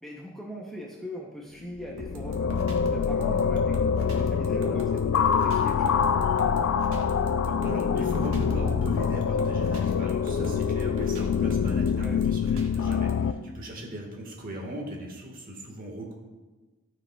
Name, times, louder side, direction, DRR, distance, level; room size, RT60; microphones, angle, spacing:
voice 1, 0.0-2.5 2.8-6.1 11.8-12.2, equal, ahead, -2 dB, 0.5 m, -40 dB
sound 1, 1.7-13.3, left 6 dB, 70° left, 0.3 m, -25 dB
sound 2, 2.0-13.1, right 1 dB, 80° right, 1.1 m, -42 dB
voice 2, 7.4-16.1, right 1 dB, 40° right, 0 dB, 1.3 m, -38 dB
13.0 x 5.0 x 2.2 m, 1.2 s
head